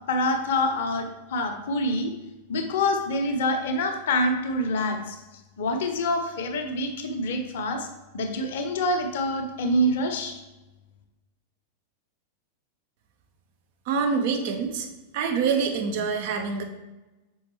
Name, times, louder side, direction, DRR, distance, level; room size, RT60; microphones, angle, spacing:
voice 1, 0.1-2.1 2.5-5.2 5.6-7.9 8.1-10.4, left 1 dB, 55° left, 5 dB, 0.8 m, -26 dB
voice 2, 13.9-14.9 15.1-16.6, right 5 dB, 50° right, 4 dB, 0.9 m, -25 dB
6.3 x 5.0 x 3.2 m, 1.1 s
figure-of-eight pair, 90°, 0 cm